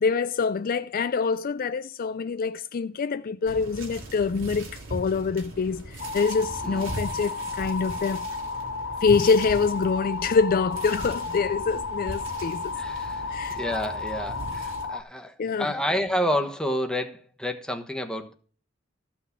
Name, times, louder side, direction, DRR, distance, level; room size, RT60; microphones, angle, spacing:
voice 1, 0.0-8.3 9.0-12.8 13.3-13.6 15.4-15.7, left 5 dB, 45° left, 0.4 m, -25 dB
sound 1, 3.5-14.9, right 1 dB, 80° right, 3.4 m, -39 dB
sound 2, 6.0-15.0, left 4 dB, 90° left, 1.4 m, -33 dB
voice 2, 12.8-18.3, equal, 5° left, 1.2 m, -29 dB
14.0 x 6.0 x 5.8 m
head